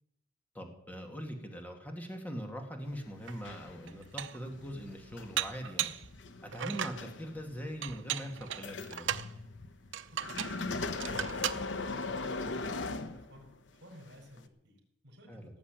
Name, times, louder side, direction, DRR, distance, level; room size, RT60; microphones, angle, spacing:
voice 1, 0.5-5.9 6.4-9.1 15.3-15.5, equal, 10° left, 3 dB, 2.4 m, -41 dB
sound 1, 2.8-13.7 14.4-14.5, left 3 dB, 75° left, 1.0 m, -40 dB
Dishes pots and pans, 3.3-3.4 3.9-4.5 5.4-6.1 6.5-7.0 7.8-9.3 9.9-10.6 11.0-11.6, right 10 dB, 80° right, 0.7 m, -36 dB
voice 2, 10.1-15.6, left 1 dB, 60° right, 0 dB, 4.4 m, -56 dB
17.0 x 7.2 x 9.1 m, 0.82 s
head